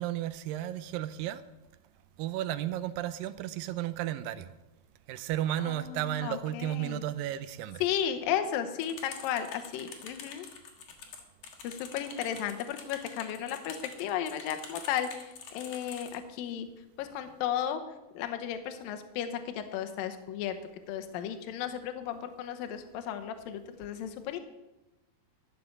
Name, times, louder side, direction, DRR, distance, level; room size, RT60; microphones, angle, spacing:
voice 1, 0.0-1.4 2.2-4.5 5.1-7.8, right 12 dB, 80° right, 2.2 m, -33 dB
voice 2, 5.7-7.0 7.8-10.5 11.6-15.2 15.5-16.7 17.0-17.8 18.1-20.5 20.9-24.4, left 9 dB, 75° left, 2.5 m, -34 dB
sound 1, 8.8-16.2, left 6 dB, 60° left, 2.6 m, -46 dB
13.0 x 6.7 x 7.1 m
omnidirectional pair, 4.4 m